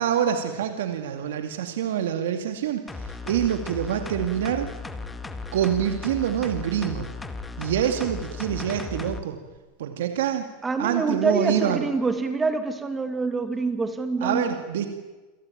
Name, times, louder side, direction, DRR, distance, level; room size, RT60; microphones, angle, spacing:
voice 1, 0.0-4.7 5.5-7.1 7.6-9.4 9.8-10.4 10.8-11.9 14.2-14.9, right 9 dB, 85° right, 6 dB, 2.3 m, -26 dB
sound 1, 2.9-9.2 9.6-9.7, left 3 dB, 10° left, 2.1 m, -36 dB
voice 2, 10.6-14.5, right 3 dB, 15° right, 8 dB, 2.5 m, -26 dB
27.5 x 18.5 x 9.0 m, 1.2 s
supercardioid pair, 120°, 0 cm